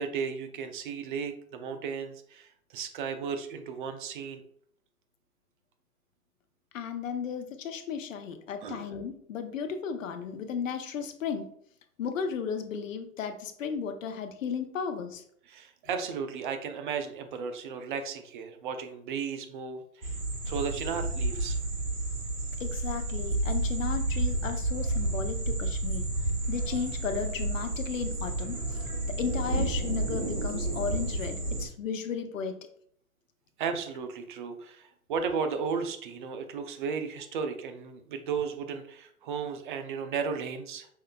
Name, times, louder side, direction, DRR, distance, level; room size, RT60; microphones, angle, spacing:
voice 1, 0.0-4.4 8.6-8.9 15.5-20.2 20.5-21.6 33.6-40.9, right 6 dB, 35° right, 7 dB, 0.5 m, -34 dB
voice 2, 6.7-11.5 12.0-15.2 22.6-26.1 26.5-28.6 29.2-32.6, left 6 dB, 60° left, 7 dB, 0.7 m, -34 dB
sound 1, 20.0-31.7, right 2 dB, 75° right, 1.3 m, -31 dB
5.5 x 3.2 x 2.2 m, 0.66 s
figure-of-eight pair, 120°, 44 cm